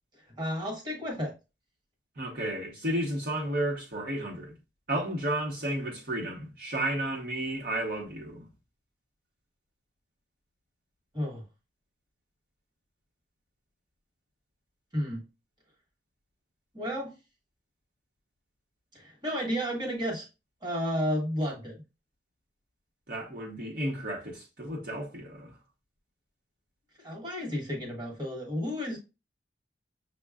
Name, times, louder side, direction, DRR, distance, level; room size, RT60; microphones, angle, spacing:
voice 1, 0.4-1.3 11.1-11.5 14.9-15.2 16.7-17.1 18.9-20.3 20.6-21.8 27.0-29.0, equal, 25° right, 1.3 m, -32 dB
voice 2, 2.2-4.6 4.9-8.5 23.1-25.5, right 1 dB, 55° right, 1.1 m, -32 dB
6.5 x 2.3 x 2.3 m
head